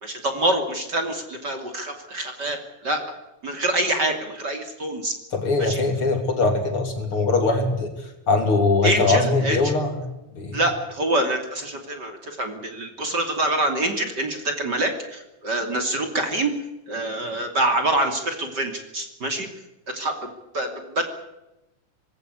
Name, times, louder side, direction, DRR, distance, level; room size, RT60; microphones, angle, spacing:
voice 1, 0.0-2.6 2.8-3.0 3.4-5.1 5.6-5.8 8.8-9.6 10.5-16.5 16.9-19.5 19.9-21.1, right 1 dB, 35° right, 6 dB, 3.3 m, -25 dB
voice 2, 5.3-7.9 8.3-10.0 10.3-10.6, left 3 dB, 45° left, 6 dB, 3.9 m, -21 dB
21.0 x 17.5 x 9.9 m, 0.93 s
omnidirectional pair, 3.4 m